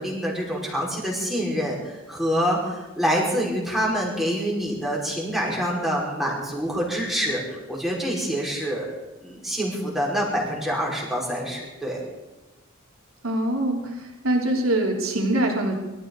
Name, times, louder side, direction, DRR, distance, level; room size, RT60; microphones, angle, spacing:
voice 1, 0.0-8.9 9.2-12.0, equal, ahead, -4 dB, 5.0 m, -26 dB
voice 2, 13.2-13.9 14.2-15.8, right 1 dB, 90° right, 0 dB, 3.4 m, -23 dB
24.0 x 14.0 x 4.0 m, 1.1 s
head